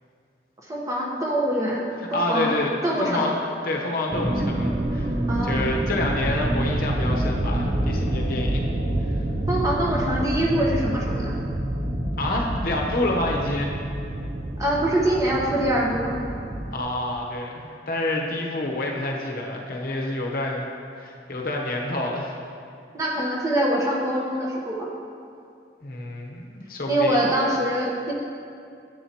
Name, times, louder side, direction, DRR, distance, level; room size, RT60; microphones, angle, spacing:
voice 1, 0.7-1.8 2.1-2.5 2.8-3.3 5.3-5.6 9.5-11.3 14.6-16.2 22.9-24.9 26.9-28.1, right 1 dB, 20° right, -3 dB, 1.0 m, -24 dB
voice 2, 2.1-2.7 3.0-3.4 3.6-5.1 5.4-8.6 9.1-9.2 12.2-13.7 16.7-20.7 21.0-22.4 25.8-27.2, left 1 dB, 55° left, -1 dB, 0.9 m, -28 dB
sound 1, 4.1-16.8, right 1 dB, 35° right, 0.6 m, -27 dB
10.5 x 7.9 x 2.9 m, 2.4 s
head